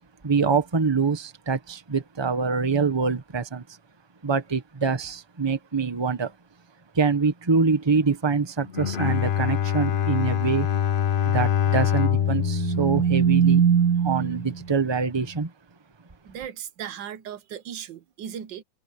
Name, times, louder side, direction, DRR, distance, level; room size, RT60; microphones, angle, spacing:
voice 1, 0.2-3.6 4.2-6.3 6.9-10.7 11.2-13.6 14.0-15.5, right 5 dB, 15° right, 1.1 m, -25 dB
Bowed string instrument, 8.7-14.0, left 9 dB, 65° left, 0.5 m, -25 dB
sound 1, 12.0-14.6, right 7 dB, 65° right, 1.0 m, -22 dB
voice 2, 16.2-18.6, right 9 dB, 80° right, 1.6 m, -37 dB
omnidirectional pair, 2.0 m